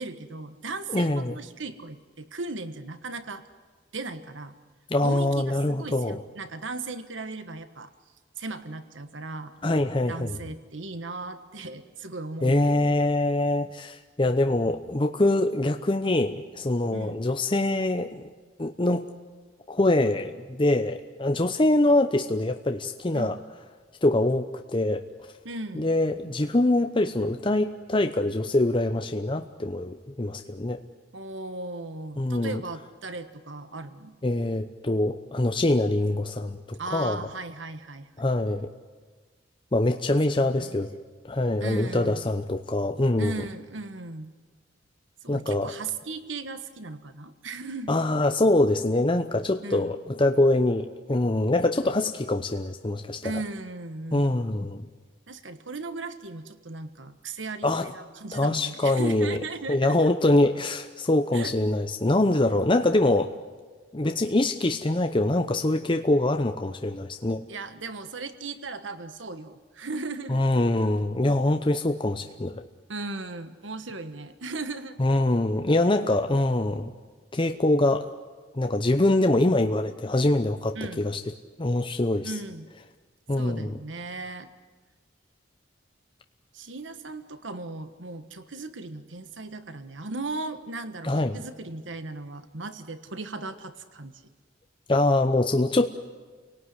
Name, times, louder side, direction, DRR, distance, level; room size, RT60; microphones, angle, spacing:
voice 1, 0.0-3.5 3.9-4.5 5.0-7.9 8.4-9.5 10.1-13.0 16.9-17.2 23.1-23.4 25.4-25.9 31.1-34.2 36.8-38.3 40.4-40.8 41.6-42.2 43.2-44.3 45.2-47.9 49.6-50.0 53.2-54.4 55.3-60.1 61.3-61.6 67.5-70.4 72.9-75.0 80.7-81.0 82.2-82.7 83.4-84.5 86.5-94.2, right 3 dB, 90° right, 10 dB, 1.4 m, -37 dB
voice 2, 0.9-1.4 4.9-6.2 9.6-10.4 12.4-18.3 18.6-19.0 19.7-23.4 24.0-25.0 25.7-30.8 32.2-32.6 34.2-37.2 38.2-38.7 39.7-40.9 41.2-43.4 45.3-45.7 47.9-53.3 54.1-54.9 57.6-57.9 58.3-59.4 59.7-63.3 63.9-67.4 70.3-72.6 75.0-76.9 77.3-78.1 78.5-81.2 81.6-82.3 83.3-83.7 91.0-91.4 94.9-95.9, left 2 dB, 25° left, 6 dB, 0.8 m, -24 dB
29.0 x 18.5 x 9.7 m, 1.4 s
head